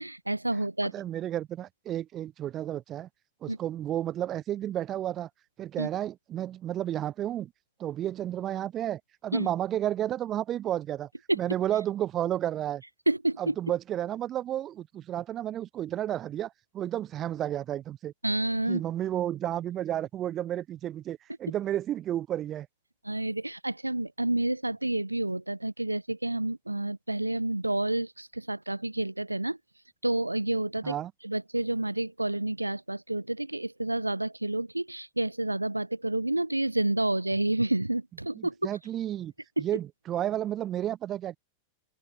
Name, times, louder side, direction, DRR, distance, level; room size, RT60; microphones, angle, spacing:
voice 1, 0.0-0.9 3.5-3.6 5.8-5.9 9.3-9.5 11.3-11.4 13.1-13.5 18.2-18.8 23.0-29.6 30.0-31.0 31.2-38.5 39.6-39.7, right 2 dB, 85° right, 3.3 m, -29 dB
voice 2, 0.9-3.1 3.4-5.3 5.6-7.5 7.8-11.1 11.3-12.8 13.4-18.1 18.7-22.7 30.8-31.1 38.3-39.3 39.6-41.4, right 12 dB, 30° right, 4.5 m, -32 dB
open air
figure-of-eight pair, 90°, 0 cm